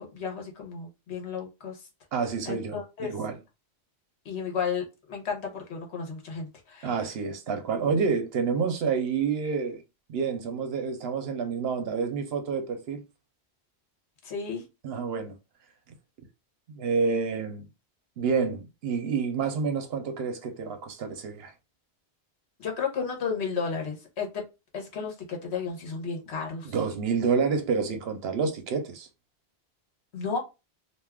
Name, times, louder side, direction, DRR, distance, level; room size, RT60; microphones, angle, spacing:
voice 1, 0.0-1.8 2.5-3.1 4.2-6.9 14.2-14.6 22.6-24.4 24.7-26.7 30.1-30.4, left 5 dB, 80° left, 1.2 m, -33 dB
voice 2, 2.1-3.4 6.8-9.8 10.1-13.0 14.8-15.4 16.7-17.7 18.2-21.5 26.6-29.1, right 5 dB, 70° right, 0.8 m, -28 dB
2.6 x 2.3 x 3.4 m
omnidirectional pair, 1.1 m